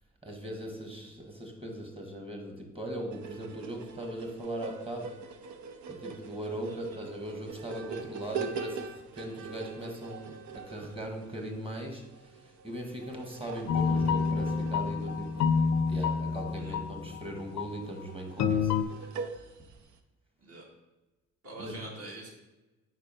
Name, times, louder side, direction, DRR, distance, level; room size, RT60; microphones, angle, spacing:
voice 1, 0.2-5.2 5.9-12.1 12.4-15.5 15.9-18.7 19.0-19.2 21.6-21.8, right 1 dB, 20° right, 3 dB, 1.4 m, -39 dB
sound 1, 3.1-20.0, right 5 dB, 70° right, 0.6 m, -44 dB
voice 2, 6.7-7.0 16.6-17.1 20.4-20.6 21.4-22.3, right 2 dB, 50° right, -2 dB, 2.0 m, -45 dB
sound 2, 13.7-17.2 17.6-17.8 18.4-18.8, left 5 dB, 65° left, 0.5 m, -28 dB
4.7 x 4.3 x 5.6 m, 1.1 s
cardioid pair, 90°, 30 cm